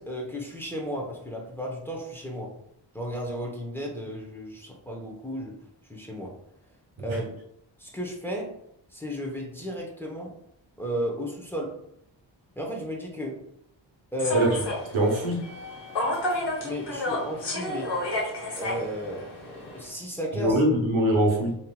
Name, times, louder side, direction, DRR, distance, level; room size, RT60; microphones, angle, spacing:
voice 1, 0.0-2.5 2.9-5.5 5.9-6.3 7.0-7.3 7.8-8.5 8.9-10.3 10.8-11.7 12.6-13.3 14.1-14.5 16.6-17.9 18.6-20.6, equal, 5° left, -2 dB, 0.8 m, -33 dB
Human voice / Subway metro underground, 14.2-19.9, left 1 dB, 60° left, 1.0 m, -31 dB
voice 2, 14.9-15.4 20.3-21.6, right 1 dB, 80° right, -1 dB, 0.9 m, -23 dB
2.9 x 2.7 x 2.2 m, 0.74 s
cardioid pair, 55°, 47 cm